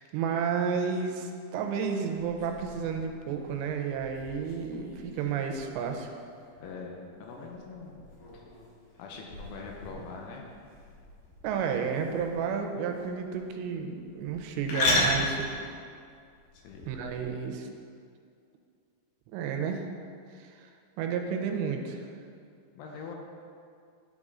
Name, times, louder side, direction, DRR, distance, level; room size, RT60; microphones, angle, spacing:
voice 1, 0.0-6.1 11.4-15.5 16.9-17.7 19.3-19.9 20.4-20.7 21.0-22.0, right 6 dB, 85° right, 4 dB, 2.8 m, -31 dB
sound 1, 2.1-17.2, left 1 dB, 65° left, 1.9 m, -36 dB
voice 2, 6.6-8.0 8.3-8.5 9.0-10.5 16.5-16.9 22.8-23.2, left 4 dB, 85° left, 0 dB, 2.8 m, -43 dB
10.0 x 5.3 x 3.7 m, 2.3 s
omnidirectional pair, 5.1 m